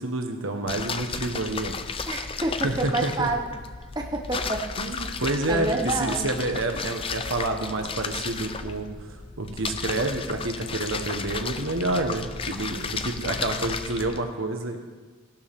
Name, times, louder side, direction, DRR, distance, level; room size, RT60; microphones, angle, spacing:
voice 1, 0.0-2.0 2.6-3.3 4.8-14.8, right 2 dB, 75° right, 4 dB, 1.4 m, -29 dB
sound 1, 0.7-14.2, left 5 dB, 25° left, 0.5 m, -34 dB
voice 2, 2.1-3.4 3.9-4.6 5.5-6.3, right 2 dB, 20° right, 1 dB, 1.0 m, -28 dB
16.5 x 12.0 x 3.7 m, 1.4 s
head